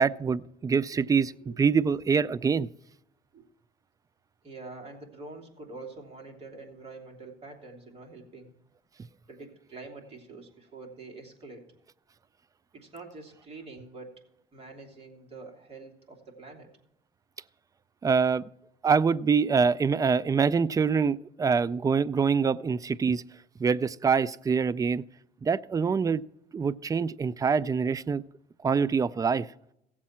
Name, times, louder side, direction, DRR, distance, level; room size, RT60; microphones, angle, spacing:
voice 1, 0.0-2.7 18.0-18.4 18.8-23.2 23.6-25.0 25.4-26.2 26.5-28.2 28.6-29.5, right 5 dB, 20° right, 17 dB, 0.4 m, -25 dB
voice 2, 4.4-8.5 9.3-11.7 12.7-14.2 14.5-16.7, right 3 dB, 35° right, 1 dB, 2.8 m, -46 dB
16.5 x 7.4 x 4.3 m, 0.82 s
cardioid pair, 110°, 17 cm